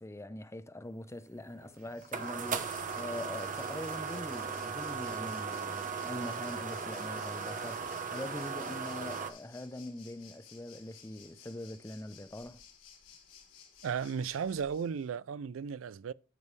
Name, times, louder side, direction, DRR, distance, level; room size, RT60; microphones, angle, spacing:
voice 1, 0.0-12.6, left 1 dB, 15° left, 0.6 m, -43 dB
sound 1, 1.3-9.3, right 5 dB, 40° right, 1.0 m, -37 dB
Waves surf, 1.8-15.1, left 7 dB, 80° left, 3.1 m, -57 dB
voice 2, 13.8-16.1, right 6 dB, 85° right, 0.4 m, -35 dB
12.0 x 5.4 x 3.2 m
head